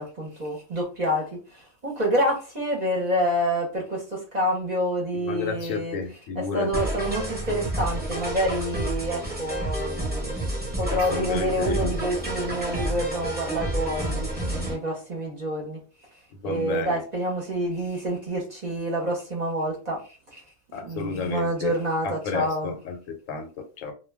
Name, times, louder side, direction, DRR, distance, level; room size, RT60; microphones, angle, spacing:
voice 1, 0.0-15.8 16.4-20.4 20.8-22.8, equal, 40° right, 0.7 m, -28 dB
voice 2, 5.2-6.8 10.9-12.2 16.4-17.0 20.7-21.7 22.0-23.9, left 5 dB, 85° left, 1.0 m, -31 dB
sound 1, 6.7-14.7, right 1 dB, 10° right, 0.9 m, -30 dB
2.2 x 2.2 x 3.3 m
omnidirectional pair, 1.3 m